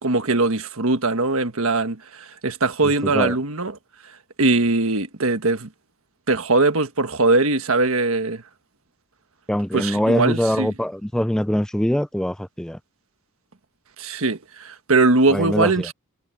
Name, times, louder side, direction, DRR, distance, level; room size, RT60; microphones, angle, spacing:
voice 1, 0.0-3.7 4.4-5.7 6.3-8.4 9.7-10.7 14.0-15.9, right 3 dB, 65° right, 1.5 m, -21 dB
voice 2, 2.8-3.4 9.5-12.8 15.3-15.9, equal, 5° left, 0.4 m, -23 dB
head